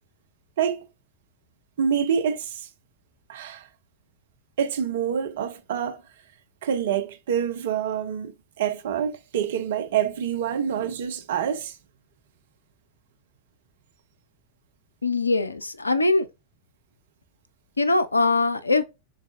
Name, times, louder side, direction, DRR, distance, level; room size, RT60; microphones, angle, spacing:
voice 1, 1.8-2.7 3.3-3.7 4.6-6.0 6.6-11.8, right 8 dB, 60° right, 0.6 m, -26 dB
voice 2, 15.0-16.3 17.8-18.8, left 3 dB, 80° left, 0.4 m, -22 dB
4.0 x 3.6 x 2.4 m
figure-of-eight pair, 90°, 0 cm